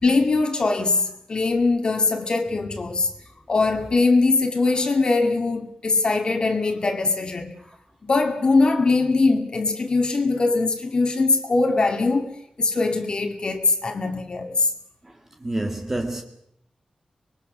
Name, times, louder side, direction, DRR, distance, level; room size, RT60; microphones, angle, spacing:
voice 1, 0.0-3.1 3.5-7.5 8.0-12.3 12.6-14.7, left 3 dB, 40° left, 2.1 m, -21 dB
voice 2, 15.0-16.2, right 1 dB, 20° right, 1.7 m, -29 dB
25.5 x 21.5 x 6.4 m
wide cardioid pair, 170°, 2 cm